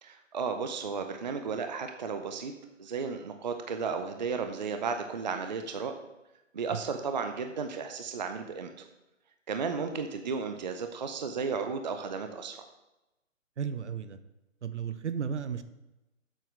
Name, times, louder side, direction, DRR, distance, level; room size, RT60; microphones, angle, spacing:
voice 1, 0.0-2.5 2.8-5.9 6.5-8.8 9.5-12.6, right 5 dB, 35° right, 6 dB, 0.6 m, -34 dB
voice 2, 13.6-14.2 14.6-15.6, right 7 dB, 60° right, 12 dB, 0.9 m, -34 dB
7.9 x 6.9 x 6.0 m, 0.97 s
hypercardioid pair, 160°, 40 cm